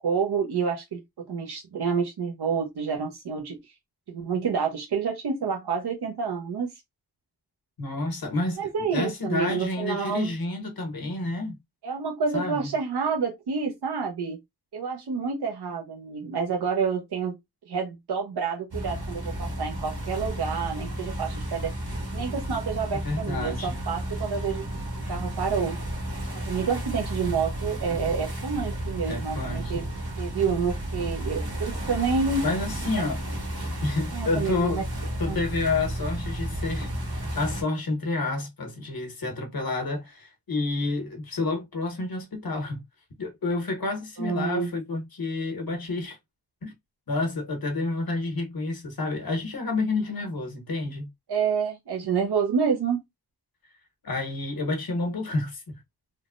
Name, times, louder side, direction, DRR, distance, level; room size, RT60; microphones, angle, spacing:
voice 1, 0.0-3.6 4.1-6.7 8.6-10.3 11.8-14.4 14.7-17.4 17.7-21.7 22.1-24.6 25.1-25.8 26.3-29.8 30.2-32.4 34.1-34.8 35.2-35.4 44.2-44.7 51.3-53.0, right 5 dB, 90° right, 0.6 m, -28 dB
voice 2, 7.8-11.6 12.3-12.7 22.9-23.8 29.1-29.9 32.4-33.2 33.8-34.8 35.2-42.8 43.2-46.2 46.6-46.7 47.1-51.1 54.0-55.8, left 2 dB, 70° left, 1.1 m, -29 dB
sound 1, 18.7-37.6, right 1 dB, 75° right, 1.6 m, -32 dB
3.3 x 2.1 x 2.4 m
wide cardioid pair, 50°, 38 cm